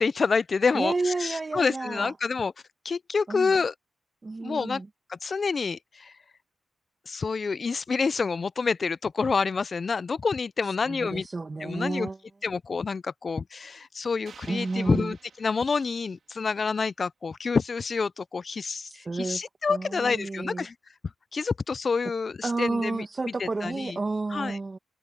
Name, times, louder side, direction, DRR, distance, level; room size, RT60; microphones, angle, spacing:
voice 1, 0.0-2.5 2.8-3.7 4.4-4.8 5.1-6.1 7.1-11.3 11.6-12.1 12.4-20.7 21.3-23.0 23.4-24.0 24.3-24.6, left 5 dB, 45° left, 0.3 m, -28 dB
voice 2, 0.7-2.1 3.3-3.5 4.2-4.9 10.9-12.2 14.5-15.1 18.8-19.4 19.7-20.6 22.4-24.8, right 3 dB, 30° right, 1.8 m, -31 dB
sound 1, 14.3-16.4, right 6 dB, 65° right, 3.2 m, -53 dB
wide cardioid pair, 110°, 0 cm